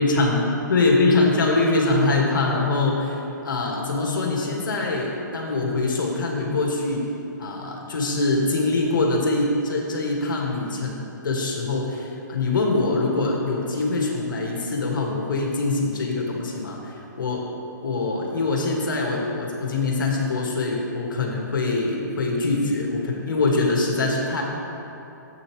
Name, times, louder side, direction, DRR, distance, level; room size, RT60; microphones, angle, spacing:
voice 1, 0.0-3.2 3.4-7.0 7.4-17.5 17.8-24.4, left 3 dB, 80° left, -1 dB, 2.1 m, -23 dB
13.5 x 8.5 x 3.3 m, 3.0 s
hypercardioid pair, 135°, 11 cm